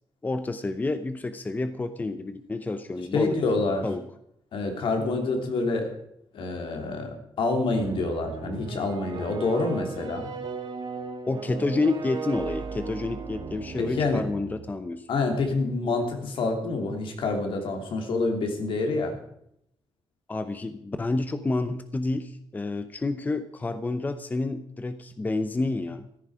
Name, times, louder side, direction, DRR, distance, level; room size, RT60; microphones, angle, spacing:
voice 1, 0.2-3.3 3.8-4.0 11.3-15.0 20.3-26.1, left 2 dB, 20° left, 10 dB, 0.8 m, -29 dB
voice 2, 3.1-3.8 4.5-5.9 6.3-10.3 13.8-14.2 15.1-19.1, left 3 dB, 75° left, 3 dB, 3.2 m, -27 dB
sound 1, 7.8-14.7, right 5 dB, 60° right, 1.9 m, -36 dB
15.0 x 13.5 x 5.0 m, 0.74 s
wide cardioid pair, 150°, 9 cm